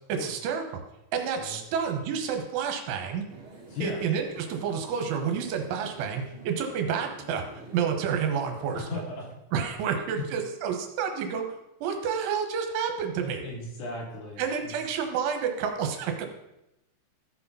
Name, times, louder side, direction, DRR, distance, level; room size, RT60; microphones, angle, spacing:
voice 1, 0.1-0.6 1.1-3.2 3.8-7.4 7.7-9.0 9.5-11.4 11.8-13.4 14.4-16.3, right 7 dB, 80° right, 4 dB, 3.3 m, -29 dB
sound 1, 3.3-8.8, right 2 dB, 35° right, 2.6 m, -47 dB
voice 2, 3.7-4.0 8.7-9.3 10.2-10.3 13.4-14.7, left 3 dB, 65° left, 0 dB, 3.5 m, -36 dB
14.0 x 4.8 x 5.6 m, 0.90 s
omnidirectional pair, 5.7 m